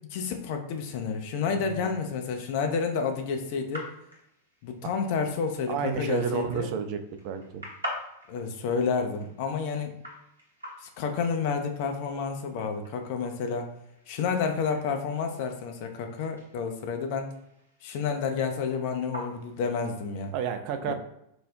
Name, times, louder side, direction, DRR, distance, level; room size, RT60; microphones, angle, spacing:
voice 1, 0.1-3.9 4.6-6.7 8.3-9.9 10.8-13.7 14.1-17.3 17.8-20.3 20.8-20.9, left 5 dB, 50° left, 5 dB, 0.4 m, -30 dB
sound 1, 0.8-20.3, left 1 dB, 80° right, 0.7 m, -47 dB
voice 2, 5.7-7.6 20.3-20.9, right 7 dB, 45° right, 7 dB, 0.3 m, -31 dB
3.9 x 2.0 x 2.3 m, 0.79 s
figure-of-eight pair, 90°, 0 cm